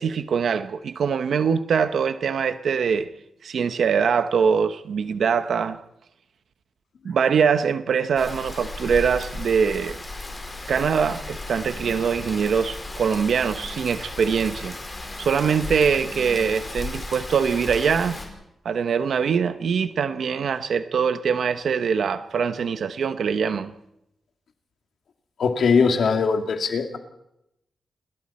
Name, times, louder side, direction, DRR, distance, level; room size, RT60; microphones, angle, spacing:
voice 1, 0.0-3.1 3.4-5.8 7.0-10.0 10.7-14.8 15.2-18.2 18.6-23.7, right 6 dB, 70° right, 0.9 m, -23 dB
Rain, 8.2-18.3, left 2 dB, 20° left, 4.5 m, -35 dB
voice 2, 25.4-27.0, left 5 dB, 65° left, 2.4 m, -21 dB
29.0 x 21.0 x 4.3 m
wide cardioid pair, 155°, 0 cm